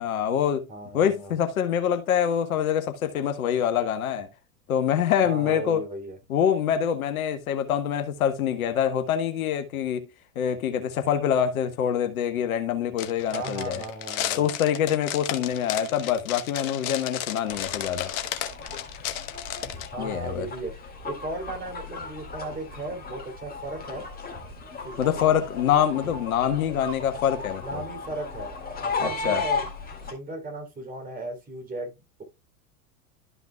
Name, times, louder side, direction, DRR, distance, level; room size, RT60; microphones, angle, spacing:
voice 1, 0.0-0.7 0.9-4.3 4.7-5.8 6.3-10.1 10.3-13.8 14.4-18.1 20.0-20.5 25.0-27.8 29.0-29.4, left 9 dB, 65° left, 1.3 m, -25 dB
voice 2, 0.7-1.4 5.2-6.2 13.3-14.5 19.9-20.7 21.0-24.1 24.8-25.4 27.4-28.5 28.8-29.6 30.1-31.9, right 2 dB, 20° right, 3.1 m, -36 dB
sound 1, 13.0-19.9, left 11 dB, 45° left, 1.2 m, -33 dB
sound 2, 17.5-30.1, left 4 dB, 20° left, 2.2 m, -36 dB
12.0 x 5.8 x 2.3 m
figure-of-eight pair, 85°, 46 cm